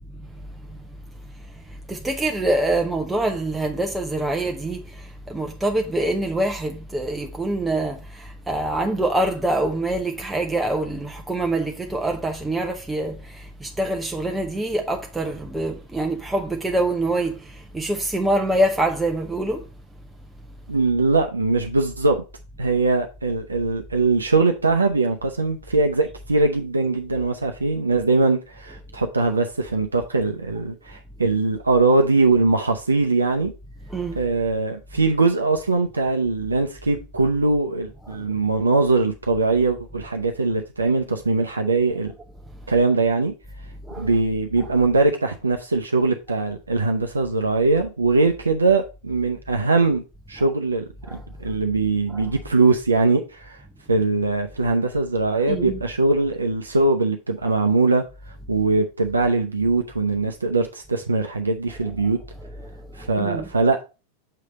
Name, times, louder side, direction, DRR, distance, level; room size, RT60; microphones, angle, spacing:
voice 1, 1.9-19.6 33.9-34.2 38.1-38.2 43.9-44.1 44.6-44.7 51.1-51.2 52.1-52.3 55.5-55.8 63.0-63.5, right 1 dB, 10° right, 0.7 m, -25 dB
voice 2, 20.7-22.2 22.6-33.5 34.1-42.1 42.7-43.3 44.0-50.0 50.3-50.8 51.1-53.6 53.9-58.0 58.5-62.2 63.0-63.8, right 3 dB, 75° right, 0.6 m, -21 dB
6.6 x 3.3 x 5.0 m
figure-of-eight pair, 90°, 0 cm